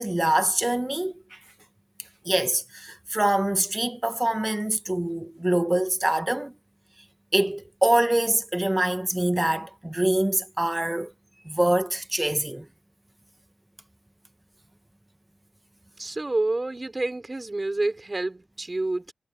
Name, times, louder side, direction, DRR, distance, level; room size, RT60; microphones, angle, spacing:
voice 1, 0.0-1.4 2.2-6.5 7.3-11.1 11.4-12.7, right 1 dB, 15° right, 1.4 m, -24 dB
voice 2, 16.0-19.1, right 2 dB, 35° right, 5.3 m, -28 dB
cardioid pair, 45°, 0 cm